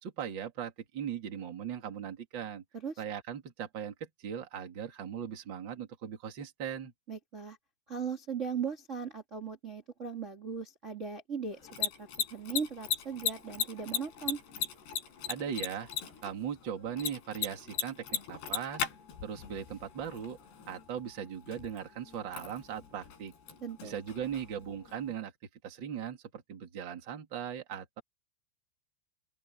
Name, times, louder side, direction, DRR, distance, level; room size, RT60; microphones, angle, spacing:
voice 1, 0.0-2.6 3.0-6.9 15.3-15.9 16.2-18.9 19.2-20.4 20.7-23.3 23.8-25.3 25.6-28.0, right 8 dB, 35° right, 2.2 m, -39 dB
voice 2, 7.1-7.6 7.9-14.4 23.6-24.0, right 6 dB, 85° right, 0.6 m, -38 dB
Mechanisms, 11.5-25.1, left 8 dB, 65° left, 5.7 m, -39 dB
open air
omnidirectional pair, 5.3 m